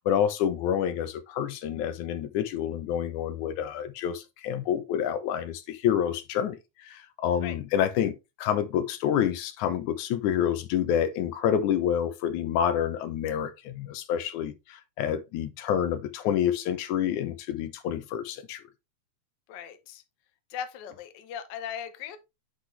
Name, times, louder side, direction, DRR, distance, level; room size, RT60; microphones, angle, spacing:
voice 1, 0.0-6.6 6.8-18.6, left 9 dB, 90° left, 2.3 m, -28 dB
voice 2, 19.5-20.0 20.5-22.2, left 9 dB, 65° left, 1.1 m, -38 dB
8.1 x 5.8 x 3.3 m
omnidirectional pair, 3.3 m